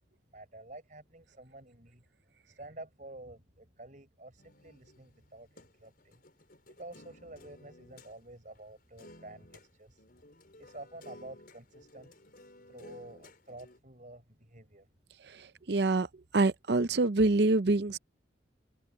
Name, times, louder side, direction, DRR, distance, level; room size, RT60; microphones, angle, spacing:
voice 1, 0.3-2.0 2.4-6.1 6.7-10.0 10.6-12.1 12.7-14.9, right 2 dB, 40° right, 6.1 m, -50 dB
sound 1, 4.4-8.1 8.6-8.7 9.0-9.7 10.0-13.8, left 1 dB, 50° left, 6.6 m, -55 dB
voice 2, 15.7-16.1 16.3-18.0, right 2 dB, 60° right, 0.6 m, -25 dB
head